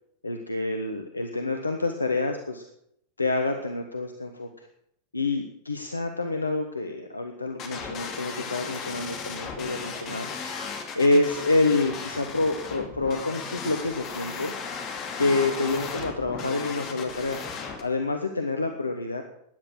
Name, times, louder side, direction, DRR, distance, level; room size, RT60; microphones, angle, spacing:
voice 1, 0.2-2.6 3.2-4.7 5.1-10.3 10.9-14.5 15.2-17.4 17.8-19.2, left 2 dB, 80° left, 5 dB, 1.0 m, -27 dB
sound 1, 7.6-17.8, left 5 dB, 35° left, 2.4 m, -36 dB
13.5 x 10.0 x 6.3 m, 0.75 s
figure-of-eight pair, 90°, 0 cm